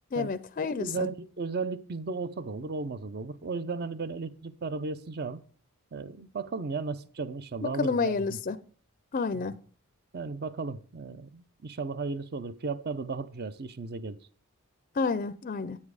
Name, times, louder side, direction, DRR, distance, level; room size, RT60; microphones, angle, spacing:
voice 1, 0.1-1.1 7.8-8.6 9.1-9.5 15.0-15.8, left 4 dB, 35° left, 0.4 m, -29 dB
voice 2, 0.8-5.4 5.9-8.4 9.3-9.5 10.1-14.2, right 4 dB, 45° right, 0.5 m, -35 dB
9.4 x 7.3 x 4.8 m
head